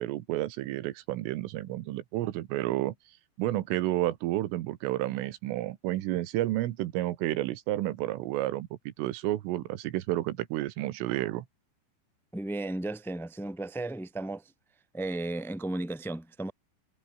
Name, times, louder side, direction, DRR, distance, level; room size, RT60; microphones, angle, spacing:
voice 1, 0.0-3.0 3.4-11.5, right 15 dB, 80° right, 3.9 m, -31 dB
voice 2, 12.3-14.4 14.9-16.5, right 2 dB, ahead, 1.9 m, -34 dB
omnidirectional pair, 5.8 m